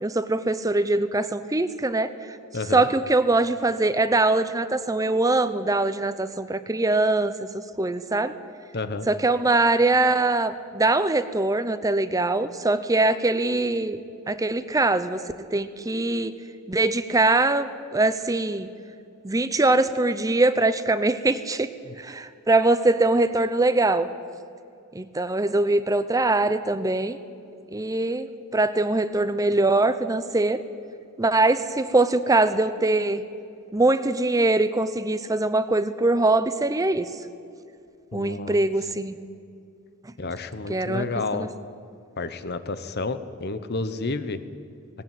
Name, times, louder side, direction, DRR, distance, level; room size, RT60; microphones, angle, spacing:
voice 1, 0.0-2.4 2.7-7.3 7.8-8.3 9.1-14.0 14.3-15.2 15.5-16.3 16.7-18.7 19.2-21.7 22.0-24.1 24.9-27.2 27.7-30.6 31.2-33.2 33.7-37.1 38.1-39.1 40.7-41.0 41.3-41.5, right 2 dB, 15° right, 12 dB, 0.6 m, -22 dB
voice 2, 2.5-2.9 8.7-9.1 21.8-21.9 38.1-38.7 40.2-41.5 42.2-44.4, left 3 dB, 45° left, 12 dB, 1.0 m, -30 dB
19.0 x 18.0 x 9.2 m, 2.5 s
head